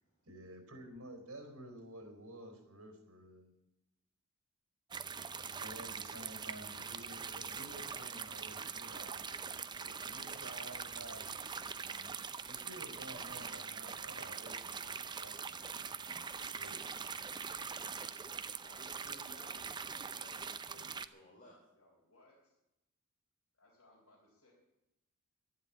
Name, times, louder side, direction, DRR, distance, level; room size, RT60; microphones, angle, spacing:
voice 1, 0.2-3.5 5.6-17.0, right 1 dB, 75° right, 5 dB, 4.2 m, -52 dB
sound 1, 4.9-21.1, right 6 dB, 20° right, 0.5 m, -43 dB
sound 2, 5.6-13.4, right 1 dB, 55° right, 4.9 m, -69 dB
voice 2, 6.6-7.7 18.0-18.6 21.7-22.6 23.5-24.5, left 1 dB, 70° left, -4 dB, 4.2 m, -67 dB
voice 3, 18.6-21.5, equal, 35° left, -3 dB, 3.8 m, -58 dB
12.0 x 11.5 x 8.5 m, 0.90 s
head